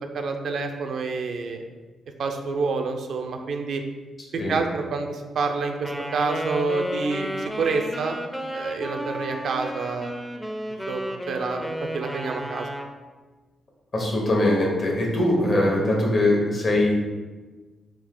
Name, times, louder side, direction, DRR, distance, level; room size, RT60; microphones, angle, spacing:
voice 1, 0.1-1.6 2.2-3.8 4.3-7.3 7.6-8.2 8.5-10.1 10.9-12.7, right 4 dB, 70° right, 4 dB, 0.4 m, -28 dB
Wind instrument woodwind instrument, 5.8-12.9, equal, 5° left, 0.5 m, -32 dB
voice 2, 13.9-17.0, left 1 dB, 55° left, -2 dB, 1.2 m, -21 dB
3.6 x 2.4 x 3.7 m, 1.3 s
supercardioid pair, 60°, 0 cm